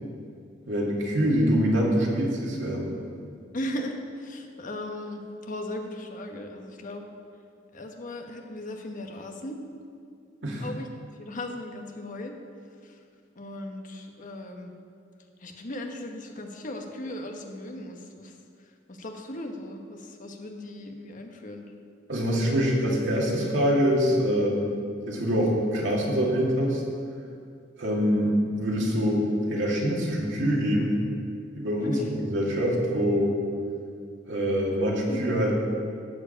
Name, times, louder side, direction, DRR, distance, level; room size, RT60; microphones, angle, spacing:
voice 1, 0.7-2.9 10.4-10.7 22.1-24.7 25.1-26.8 27.8-31.0 31.6-33.3 34.3-35.6, equal, 70° right, -3 dB, 2.2 m, -24 dB
voice 2, 3.5-7.0 7.7-9.6 10.6-10.9 11.2-12.3 12.8-12.9 13.4-14.7 15.4-18.3 18.9-21.7 31.8-32.0 35.1-35.2, left 1 dB, 45° left, 3 dB, 1.2 m, -37 dB
12.5 x 4.9 x 8.5 m, 2.3 s
head